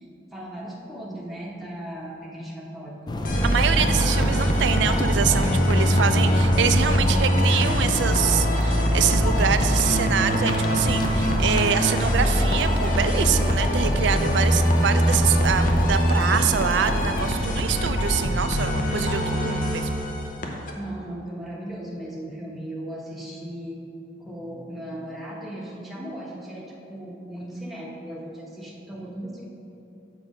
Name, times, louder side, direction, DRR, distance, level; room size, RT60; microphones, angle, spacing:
voice 1, 0.0-3.2 20.7-23.8 24.2-29.5, right 1 dB, ahead, -5 dB, 1.0 m, -37 dB
sound 1, 3.1-17.3, left 1 dB, 25° left, 0.4 m, -30 dB
sound 2, 3.2-20.7, equal, 50° left, 0.8 m, -22 dB
voice 2, 3.4-19.9, right 8 dB, 85° right, 10 dB, 0.4 m, -25 dB
5.9 x 4.5 x 6.4 m, 2.9 s
head